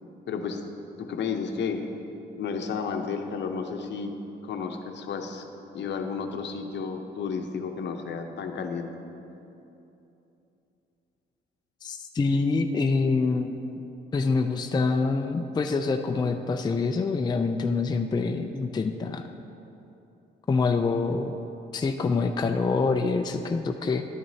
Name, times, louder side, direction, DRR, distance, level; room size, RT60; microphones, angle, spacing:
voice 1, 0.3-0.6 1.0-1.9 2.4-4.1 4.4-5.5 5.7-9.0, left 5 dB, 60° left, 5 dB, 0.8 m, -32 dB
voice 2, 11.8-13.7 14.1-19.3 20.5-21.4 21.7-24.0, left 4 dB, 20° left, 5 dB, 0.4 m, -26 dB
11.5 x 9.1 x 2.8 m, 2.9 s
cardioid pair, 90°, 20 cm